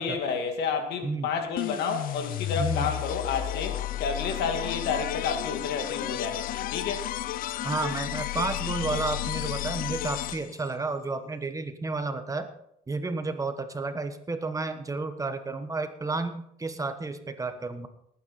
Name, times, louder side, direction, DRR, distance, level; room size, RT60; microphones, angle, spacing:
voice 1, 0.0-7.1, left 5 dB, 80° left, 2.3 m, -30 dB
sound 1, 1.6-10.7, left 14 dB, 55° left, 0.4 m, -32 dB
voice 2, 2.6-2.9 7.6-12.5 12.9-17.9, right 3 dB, 20° right, 1.2 m, -31 dB
19.0 x 9.4 x 4.3 m
cardioid pair, 110°, 17 cm